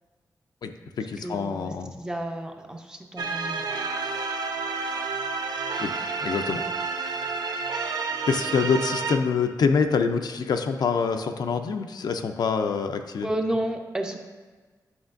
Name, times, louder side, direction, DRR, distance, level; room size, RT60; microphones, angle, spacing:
voice 1, 0.6-1.9 5.8-5.9 6.2-6.6 8.3-13.3, left 5 dB, 75° left, 6 dB, 0.4 m, -25 dB
voice 2, 1.2-1.7 2.0-3.6 13.2-14.2, right 1 dB, 10° right, 3 dB, 0.5 m, -31 dB
sound 1, 3.2-9.2, right 4 dB, 75° right, 0.5 m, -30 dB
9.6 x 5.7 x 2.5 m, 1.4 s
wide cardioid pair, 170°, 7 cm